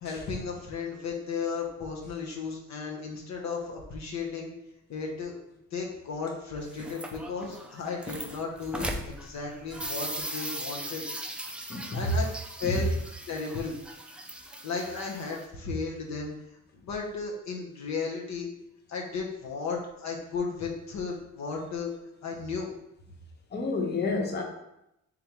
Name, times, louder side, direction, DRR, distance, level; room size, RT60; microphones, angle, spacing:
voice 1, 0.0-4.5 4.9-5.3 5.7-11.1 11.9-12.3 12.6-12.9 13.3-13.8 14.6-16.3 16.7-18.5 18.9-21.9 22.2-22.7, left 5 dB, 65° left, 0 dB, 0.8 m, -34 dB
sound 1, 6.5-15.5, right 1 dB, 5° right, 0.3 m, -39 dB
voice 2, 11.7-12.1 12.6-12.8 23.5-24.4, left 2 dB, 35° left, 1 dB, 0.7 m, -30 dB
3.7 x 3.4 x 2.9 m, 0.84 s
cardioid pair, 90°, 30 cm